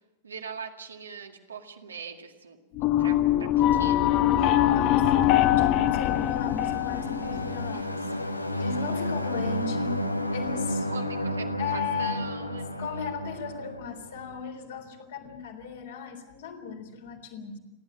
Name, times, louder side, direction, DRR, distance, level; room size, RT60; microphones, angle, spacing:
voice 1, 0.2-4.2 7.7-7.9 8.5-8.8 10.9-12.7, right 5 dB, 75° right, 4 dB, 2.1 m, -42 dB
sound 1, 2.8-7.8, left 12 dB, 40° left, 0.9 m, -23 dB
voice 2, 4.7-8.0 8.6-10.0 10.3-10.9 11.6-12.2 12.8-17.6, left 6 dB, 60° left, 3 dB, 3.7 m, -36 dB
sound 2, 5.7-14.4, left 1 dB, 85° left, 1.1 m, -32 dB
29.5 x 12.0 x 8.8 m, 0.99 s
figure-of-eight pair, 90°, 0 cm